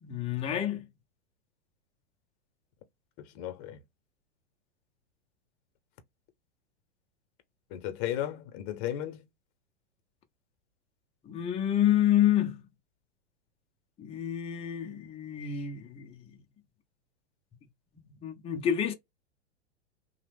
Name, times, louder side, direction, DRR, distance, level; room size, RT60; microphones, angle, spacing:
voice 1, 0.0-0.9 11.2-12.6 14.0-16.4 18.2-18.9, left 10 dB, 20° left, 0.5 m, -28 dB
voice 2, 3.2-3.8 7.7-9.2, left 12 dB, 40° left, 0.8 m, -35 dB
2.8 x 2.1 x 3.4 m
hypercardioid pair, 120°, 34 cm